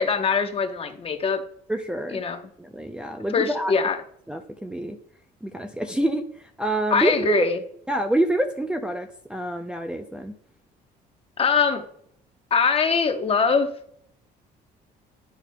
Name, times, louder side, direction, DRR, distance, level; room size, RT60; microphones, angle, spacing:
voice 1, 0.0-1.4 2.1-2.5 3.3-4.0 6.9-7.6 11.4-11.8 12.5-13.7, left 5 dB, 35° left, 7 dB, 0.9 m, -22 dB
voice 2, 1.7-2.2 2.6-3.7 4.3-5.0 5.4-6.2 6.6-7.3 7.9-10.4, right 1 dB, 5° right, 3 dB, 0.5 m, -26 dB
10.0 x 4.9 x 2.2 m, 0.64 s
cardioid pair, 110°, 17 cm